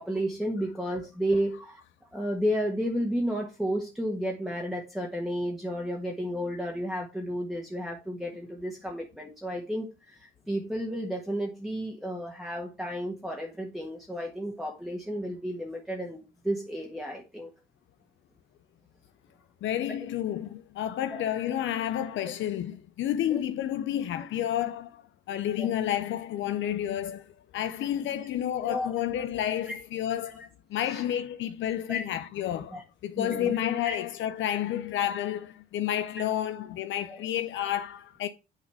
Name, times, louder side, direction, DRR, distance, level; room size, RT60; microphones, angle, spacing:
voice 1, 0.0-1.8 2.1-17.5 23.3-23.4 25.6-25.7 28.1-28.3 28.6-28.9 29.7-29.8 30.8-31.0 31.9-32.0 32.7-32.8 33.1-33.6 33.8-34.0 37.1-37.2, equal, ahead, 1.5 m, -32 dB
voice 2, 19.6-32.7 33.0-38.3, left 11 dB, 75° left, 0.6 m, -30 dB
8.9 x 4.1 x 4.7 m
cardioid pair, 90°, 20 cm